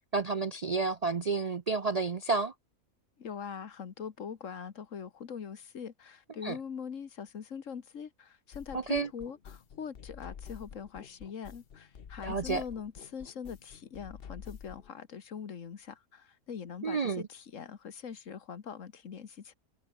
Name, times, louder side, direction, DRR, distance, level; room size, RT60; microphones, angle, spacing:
voice 1, 0.1-2.5 6.4-6.6 8.7-9.1 12.2-12.6 16.8-17.2, right 4 dB, 45° right, 0.5 m, -30 dB
voice 2, 3.2-19.5, left 7 dB, 65° left, 1.6 m, -42 dB
sound 1, 8.5-14.9, left 7 dB, 45° left, 1.1 m, -48 dB
omnidirectional pair, 1.5 m